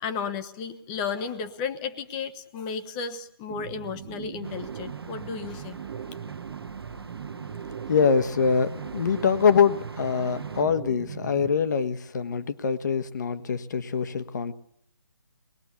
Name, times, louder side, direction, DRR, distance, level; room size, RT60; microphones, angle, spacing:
voice 1, 0.0-5.8, left 6 dB, 20° left, 9 dB, 1.1 m, -33 dB
sound 1, 3.5-11.5, right 9 dB, 30° right, 1.0 m, -40 dB
sound 2, 4.4-10.6, right 3 dB, 80° right, 1.2 m, -42 dB
voice 2, 7.9-14.5, left 6 dB, 50° left, 11 dB, 1.4 m, -24 dB
25.0 x 21.0 x 7.1 m, 0.69 s
figure-of-eight pair, 150°, 13 cm